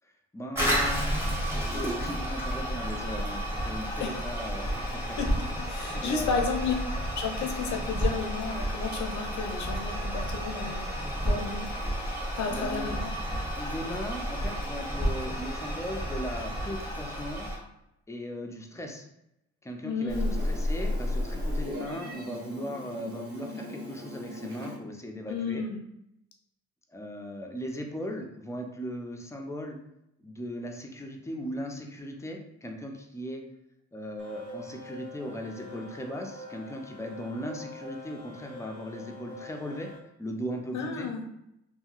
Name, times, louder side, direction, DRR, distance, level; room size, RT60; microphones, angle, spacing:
voice 1, 0.3-5.2 5.9-6.4 12.5-13.0 13.6-17.5 18.1-19.0 19.6-25.6 26.9-29.8 30.2-33.4 33.9-39.9 40.2-41.1, equal, 10° left, 2 dB, 0.4 m, -38 dB
Toilet flush, 0.5-17.6, equal, 10° right, 1.0 m, -31 dB
voice 2, 5.1-6.7 7.1-10.9 11.2-11.7 12.4-13.4 19.8-20.4 25.3-25.8 40.7-41.2, left 5 dB, 70° left, 3 dB, 0.6 m, -32 dB
Meow, 20.1-24.8, left 1 dB, 35° right, 1.0 m, -33 dB
sound 1, 34.2-40.0, left 2 dB, 75° right, 1.1 m, -45 dB
2.8 x 2.7 x 2.4 m, 0.81 s
cardioid pair, 90°, 30 cm